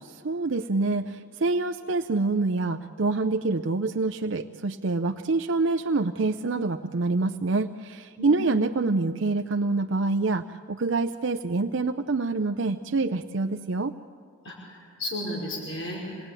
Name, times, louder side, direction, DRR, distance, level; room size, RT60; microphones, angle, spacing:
voice 1, 0.0-13.9, right 3 dB, 70° right, 6 dB, 0.6 m, -26 dB
voice 2, 8.2-8.6 14.4-16.3, left 1 dB, 75° left, -4 dB, 5.4 m, -34 dB
27.0 x 20.0 x 9.0 m, 2.1 s
head